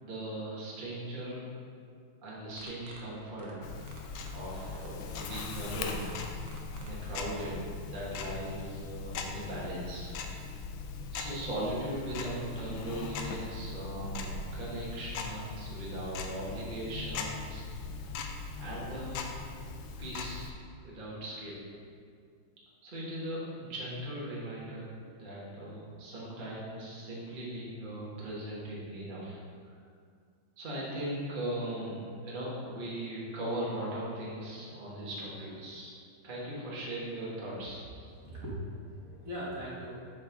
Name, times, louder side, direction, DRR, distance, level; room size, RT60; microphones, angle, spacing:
voice 1, 0.0-1.4 2.2-3.8 4.3-6.5 6.8-10.1 10.9-17.6 18.6-19.3 20.0-20.5 20.8-21.5 22.8-29.7 30.6-35.9 36.2-37.8, right 1 dB, 30° right, -7 dB, 1.2 m, -39 dB
sound 1, 2.4-7.5, right 4 dB, 65° right, 1.4 m, -52 dB
Tick-tock, 3.6-20.5, left 4 dB, 75° left, 1.3 m, -40 dB
voice 2, 38.0-39.9, equal, 45° right, -8 dB, 1.5 m, -40 dB
6.7 x 6.4 x 3.5 m, 2.2 s
omnidirectional pair, 2.4 m